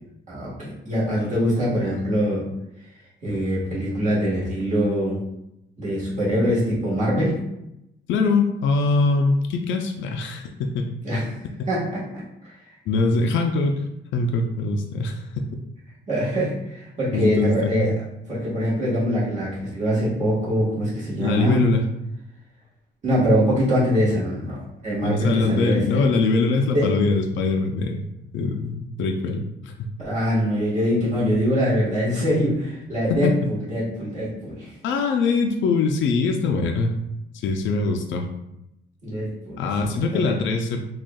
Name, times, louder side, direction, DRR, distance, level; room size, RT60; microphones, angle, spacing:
voice 1, 0.3-2.5 3.2-5.2 5.8-7.4 11.0-11.4 11.7-12.6 16.1-17.9 18.3-21.6 23.0-26.0 26.7-27.0 30.0-34.7 39.0-40.3, equal, 35° right, -7 dB, 1.4 m, -23 dB
voice 2, 8.1-10.9 12.9-13.8 14.1-15.2 17.1-17.9 21.2-21.8 25.0-28.0 28.3-29.9 33.2-33.3 34.8-36.9 37.3-38.3 39.6-40.8, left 3 dB, 70° left, 3 dB, 0.5 m, -22 dB
6.1 x 2.3 x 2.3 m, 0.86 s
cardioid pair, 165°, 20 cm